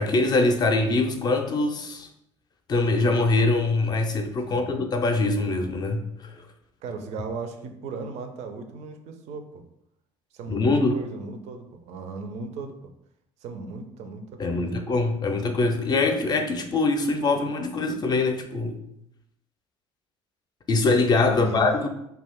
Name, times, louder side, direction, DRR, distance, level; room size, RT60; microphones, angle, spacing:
voice 1, 0.0-2.1 2.7-6.3 10.5-11.0 14.4-18.8 20.7-21.9, left 3 dB, 25° left, 5 dB, 0.5 m, -23 dB
voice 2, 4.5-4.8 6.8-9.6 10.3-12.9 13.4-15.0 21.2-21.9, right 4 dB, 45° right, 6 dB, 0.4 m, -37 dB
2.5 x 2.3 x 3.5 m, 0.79 s
figure-of-eight pair, 55°, 15 cm